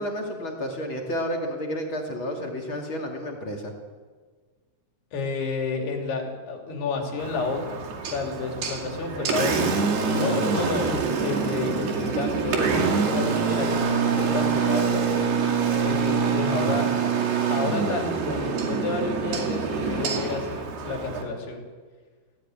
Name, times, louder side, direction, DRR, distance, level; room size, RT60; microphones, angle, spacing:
voice 1, 0.0-3.7 8.6-9.3 16.4-16.8, equal, 35° left, 1 dB, 2.5 m, -32 dB
voice 2, 5.1-9.7 10.1-15.3 15.8-16.9 17.5-21.6, left 4 dB, 60° left, 2 dB, 4.4 m, -30 dB
Engine, 7.2-21.2, right 5 dB, 60° right, 4.2 m, -25 dB
19.5 x 16.5 x 9.0 m, 1.5 s
omnidirectional pair, 5.4 m